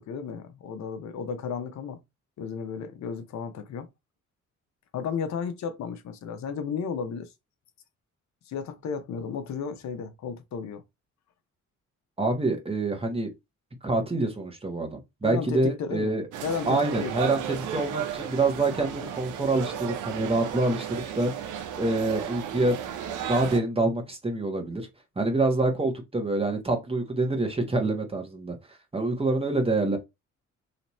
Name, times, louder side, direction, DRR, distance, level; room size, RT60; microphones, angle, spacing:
voice 1, 0.0-2.0 2.4-3.9 4.9-7.3 8.5-10.8 15.2-17.4, left 6 dB, 65° left, 0.8 m, -34 dB
voice 2, 12.2-13.3 13.8-16.2 16.7-17.4 17.7-21.5 21.8-22.8 23.3-24.9 25.2-28.6 28.9-30.0, right 2 dB, 20° right, 1.3 m, -26 dB
sound 1, 16.3-23.6, right 9 dB, 80° right, 0.8 m, -34 dB
3.2 x 2.9 x 4.2 m
cardioid pair, 90°, 30 cm